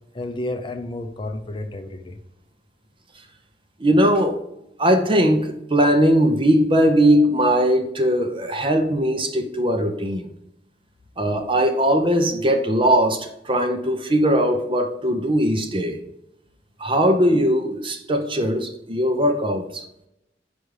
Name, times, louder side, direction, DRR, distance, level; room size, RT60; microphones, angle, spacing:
voice 1, 0.1-2.2, left 2 dB, 30° left, 0.6 m, -31 dB
voice 2, 3.8-4.4 4.8-10.3 11.2-16.0 16.8-19.9, equal, 30° right, 0.8 m, -19 dB
5.3 x 5.0 x 4.8 m
head